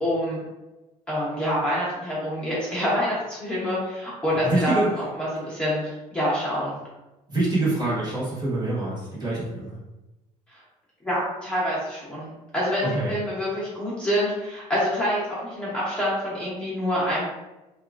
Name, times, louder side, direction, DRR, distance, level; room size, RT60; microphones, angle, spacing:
voice 1, 0.0-0.4 1.1-4.8 5.2-6.7 10.5-10.6 11.0-12.3 12.5-17.2, equal, 10° left, -8 dB, 1.0 m, -26 dB
voice 2, 4.4-5.1 7.3-9.8 12.9-13.1, right 2 dB, 30° right, -7 dB, 1.2 m, -25 dB
2.8 x 2.4 x 2.5 m, 1.0 s
cardioid pair, 120°, 14 cm